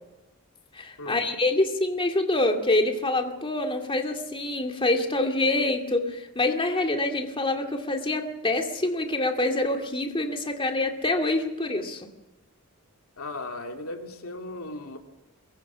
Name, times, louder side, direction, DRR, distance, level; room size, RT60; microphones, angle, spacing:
voice 1, 0.7-12.1, left 2 dB, 25° left, 4 dB, 2.2 m, -26 dB
voice 2, 13.2-15.0, left 2 dB, 75° left, 4 dB, 2.8 m, -36 dB
23.5 x 22.5 x 6.1 m, 0.98 s
head